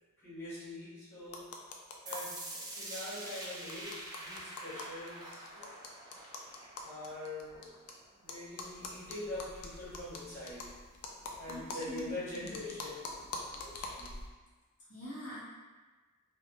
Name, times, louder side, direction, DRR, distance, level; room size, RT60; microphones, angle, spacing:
voice 1, 0.2-1.5 2.0-5.9 6.8-7.7 8.2-10.7 11.4-14.1, left 2 dB, 10° left, -13 dB, 1.2 m, -44 dB
sound 1, 1.3-2.4 2.7-2.8 3.0-3.1 3.4-7.9 8.3-14.3, left 3 dB, 90° left, 0.4 m, -45 dB
sound 2, 2.1-8.0, right 1 dB, 15° right, 0.4 m, -46 dB
voice 2, 11.5-12.6 14.9-15.4, left 1 dB, 60° left, -10 dB, 1.1 m, -44 dB
3.4 x 2.2 x 2.7 m, 1.3 s
head